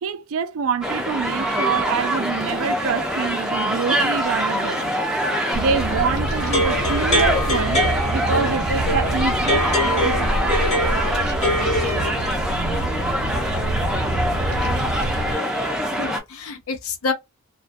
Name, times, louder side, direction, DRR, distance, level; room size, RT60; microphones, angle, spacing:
voice 1, 0.0-5.0 5.5-7.8 8.1-10.6, right 6 dB, 70° right, 0.3 m, -26 dB
sound 1, 0.8-16.2, equal, 5° right, 0.4 m, -24 dB
Bird vocalization bird call bird song, 5.5-15.3, right 2 dB, 85° right, 0.7 m, -27 dB
sound 2, 6.4-12.3, left 1 dB, 30° left, 0.9 m, -24 dB
voice 2, 15.1-17.1, left 4 dB, 80° left, 0.6 m, -30 dB
2.3 x 2.1 x 2.5 m
head